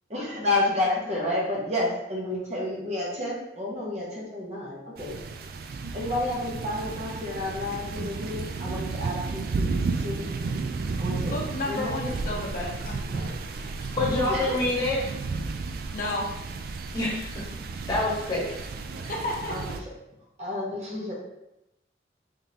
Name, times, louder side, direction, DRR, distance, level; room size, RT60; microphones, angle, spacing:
voice 1, 0.1-5.1 5.9-10.2 11.0-11.3 11.7-12.2 14.3-14.6 19.5-19.6 20.4-21.1, left 2 dB, 40° right, -4 dB, 1.0 m, -30 dB
sound 1, 5.0-19.8, right 4 dB, 55° right, 0.3 m, -33 dB
voice 2, 11.3-13.7 15.9-16.3 19.0-19.7, left 2 dB, 50° left, -2 dB, 0.6 m, -33 dB
voice 3, 13.9-15.0 16.9-17.5 17.9-18.4, left 2 dB, 25° left, -6 dB, 1.3 m, -26 dB
3.7 x 3.6 x 2.8 m, 0.89 s
head